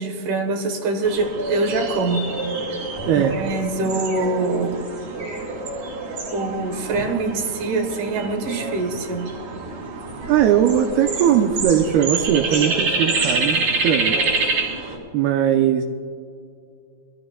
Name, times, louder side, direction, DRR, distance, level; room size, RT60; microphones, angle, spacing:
voice 1, 0.0-2.2 3.1-4.9 6.3-9.3, right 3 dB, 65° right, 4 dB, 2.2 m, -24 dB
sound 1, 1.0-15.0, right 3 dB, 45° right, 4.0 m, -27 dB
voice 2, 3.1-3.4 10.3-14.2 15.1-15.8, right 9 dB, 80° right, 4 dB, 2.4 m, -19 dB
22.5 x 14.5 x 2.2 m, 2.4 s
omnidirectional pair, 4.8 m